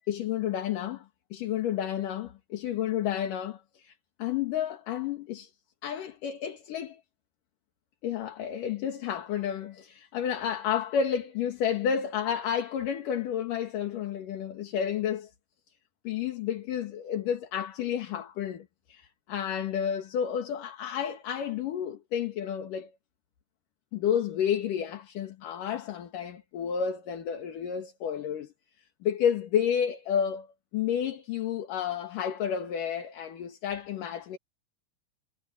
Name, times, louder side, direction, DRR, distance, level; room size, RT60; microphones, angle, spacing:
voice 1, 0.1-1.0 1.3-5.5 5.8-7.0 8.0-15.3 16.0-22.9 23.9-28.5 29.0-30.5 30.7-34.4, left 8 dB, 55° left, 2.9 m, -31 dB
omnidirectional pair, 5.2 m